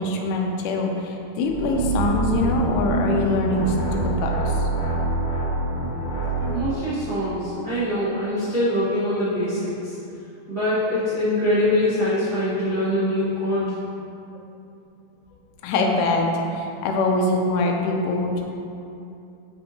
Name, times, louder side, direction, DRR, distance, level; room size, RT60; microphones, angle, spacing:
voice 1, 0.0-4.7 15.6-16.3 16.5-18.4, left 2 dB, 80° left, 1 dB, 1.8 m, -24 dB
sound 1, 1.4-6.7, right 2 dB, 60° left, 2.7 m, -25 dB
voice 2, 6.5-9.9 10.5-13.7, left 1 dB, 85° right, -14 dB, 0.8 m, -23 dB
6.8 x 5.3 x 2.8 m, 2.8 s
omnidirectional pair, 4.3 m